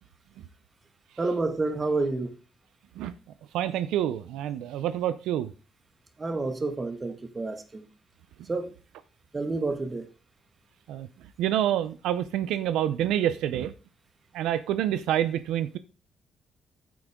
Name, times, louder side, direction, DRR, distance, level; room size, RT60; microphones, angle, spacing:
voice 1, 1.2-2.3 6.2-7.9 8.5-8.7 9.3-10.1, right 3 dB, 25° right, 1.9 m, -29 dB
voice 2, 3.5-5.5 10.9-11.1 11.4-13.7 14.3-15.8, right 11 dB, 90° right, 0.6 m, -27 dB
9.5 x 8.1 x 3.8 m
cardioid pair, 90°, 0 cm